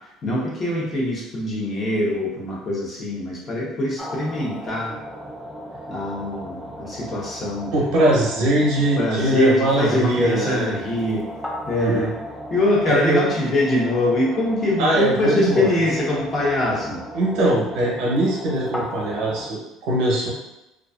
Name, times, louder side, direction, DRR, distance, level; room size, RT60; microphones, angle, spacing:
voice 1, 0.2-4.9 5.9-7.9 8.4-8.6 9.0-11.3 11.7-12.1 12.5-17.0, left 1 dB, 35° left, -4 dB, 0.8 m, -23 dB
sound 1, 4.0-19.5, equal, 5° left, 0.3 m, -36 dB
voice 2, 7.7-10.7 11.8-12.1 12.9-13.2 14.8-15.8 17.1-20.3, right 1 dB, 75° right, -3 dB, 0.8 m, -21 dB
2.3 x 2.3 x 2.3 m, 0.92 s
cardioid pair, 130°, 0 cm